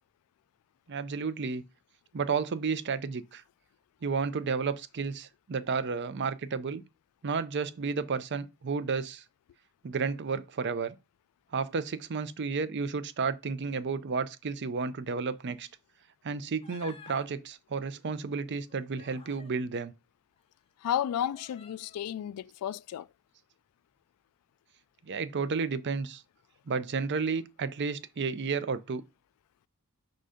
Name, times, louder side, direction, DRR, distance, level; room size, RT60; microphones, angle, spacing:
voice 1, 0.9-1.6 2.1-3.4 4.0-6.8 7.2-9.2 9.8-10.9 11.5-15.7 16.2-19.9 25.0-26.2 26.7-29.0, right 5 dB, 50° right, 0.5 m, -32 dB
Human voice, 16.6-17.3 18.5-19.6 20.4-20.5 21.3-22.0, left 5 dB, 25° left, 0.6 m, -52 dB
voice 2, 20.8-23.1, left 10 dB, 85° left, 0.3 m, -32 dB
5.5 x 3.8 x 4.9 m
head